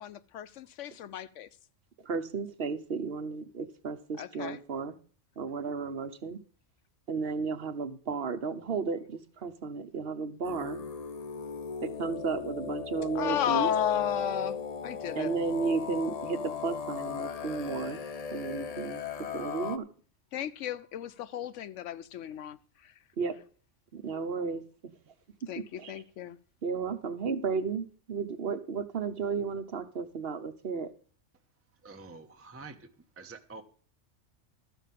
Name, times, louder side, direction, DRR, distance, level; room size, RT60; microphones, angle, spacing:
voice 1, 0.0-1.5 4.2-4.6 13.1-14.6 14.8-15.3 20.3-22.6 22.8-22.9 25.5-26.4, left 10 dB, 70° left, 1.0 m, -33 dB
voice 2, 2.0-5.0 5.4-6.4 7.1-10.8 11.8-13.7 15.1-18.0 18.3-19.9 23.2-23.4 23.9-25.1 25.6-26.0 26.6-30.9, right 5 dB, 50° right, 1.0 m, -33 dB
sound 1, 10.4-19.8, left 6 dB, 50° left, 0.5 m, -37 dB
voice 3, 31.8-32.9 33.2-33.6, right 4 dB, 15° right, 0.7 m, -47 dB
13.0 x 5.5 x 7.4 m
omnidirectional pair, 1.4 m